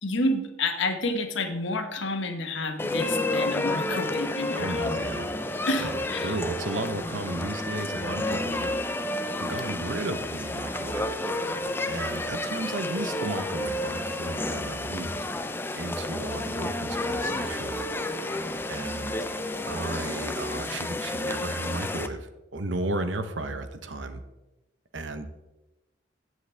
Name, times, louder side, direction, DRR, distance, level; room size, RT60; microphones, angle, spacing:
voice 1, 0.0-4.9 5.7-6.4, left 2 dB, 90° left, 5 dB, 1.3 m, -29 dB
sound 1, 2.8-22.1, left 2 dB, 10° left, 0.4 m, -31 dB
voice 2, 4.5-5.3 5.8-8.9 9.4-11.1 11.9-15.2 15.7-17.9 18.7-19.2 19.7-24.2 24.9-25.3, right 2 dB, 85° right, 9 dB, 0.9 m, -34 dB
14.5 x 7.8 x 3.4 m, 1.0 s
head